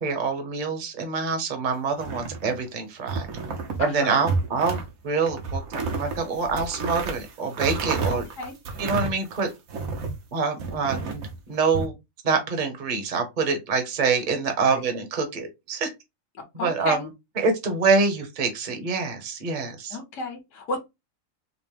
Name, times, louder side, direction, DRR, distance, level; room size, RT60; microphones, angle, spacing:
voice 1, 0.0-3.3 3.8-8.2 8.8-9.5 10.3-11.2 11.5-11.9 12.2-15.9 16.6-17.0 17.4-20.0, right 4 dB, 40° right, 1.0 m, -25 dB
sound 1, 1.9-2.7 3.1-3.8 4.2-4.9 5.2-10.2 10.6-11.9, right 4 dB, 75° right, 1.3 m, -31 dB
voice 2, 3.8-4.2 8.1-8.5 14.6-14.8 16.6-17.1 19.9-20.8, left 3 dB, 60° left, 1.4 m, -32 dB
5.0 x 2.1 x 3.2 m
omnidirectional pair, 1.5 m